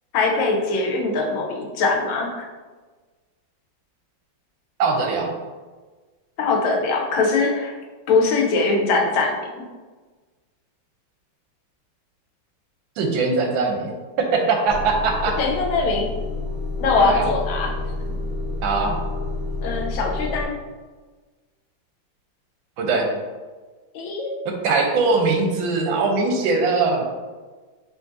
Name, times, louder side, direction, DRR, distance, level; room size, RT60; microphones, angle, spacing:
voice 1, 0.1-2.5 6.4-7.7 8.1-9.6 15.4-16.1 16.8-17.8 19.6-20.6 23.9-24.4, left 3 dB, 80° left, 1 dB, 1.5 m, -22 dB
voice 2, 4.8-5.3 13.0-13.9 14.2-15.4 17.0-17.3 18.6-19.0 22.8-23.1 24.4-27.0, right 4 dB, 85° right, 3 dB, 1.4 m, -21 dB
Motor vehicle (road) / Engine starting / Idling, 14.7-20.5, left 2 dB, 45° left, 1.1 m, -29 dB
5.0 x 3.1 x 2.5 m, 1.3 s
omnidirectional pair, 2.1 m